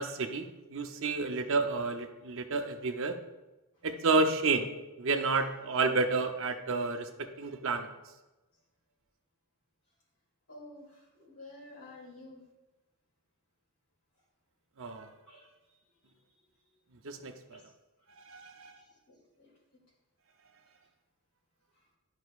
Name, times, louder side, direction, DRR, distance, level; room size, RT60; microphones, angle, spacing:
voice 1, 0.0-3.2 3.8-4.7 5.0-7.9 14.8-15.1 17.0-17.6 18.2-18.7, right 3 dB, 60° right, 6 dB, 0.6 m, -30 dB
voice 2, 10.5-12.4 15.2-15.8 16.0-16.8 17.5-17.6 18.5-19.5 21.8-21.9, left 2 dB, 75° left, -3 dB, 2.5 m, -53 dB
11.0 x 5.6 x 2.4 m, 1.1 s
head